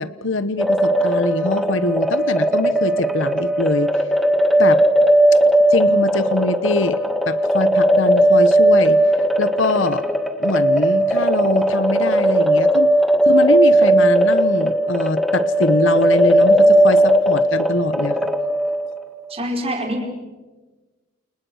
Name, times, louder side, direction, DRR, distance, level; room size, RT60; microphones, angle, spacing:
voice 1, 0.0-3.9 4.6-4.8 5.7-7.0 7.3-9.0 9.4-10.0 10.4-12.9 13.3-18.2, left 2 dB, 65° left, 14 dB, 1.1 m, -23 dB
sound 1, 0.6-19.0, right 1 dB, ahead, 2.0 m, -17 dB
voice 2, 19.3-20.0, equal, 30° right, 2 dB, 5.1 m, -25 dB
29.5 x 29.5 x 6.5 m, 1.2 s
head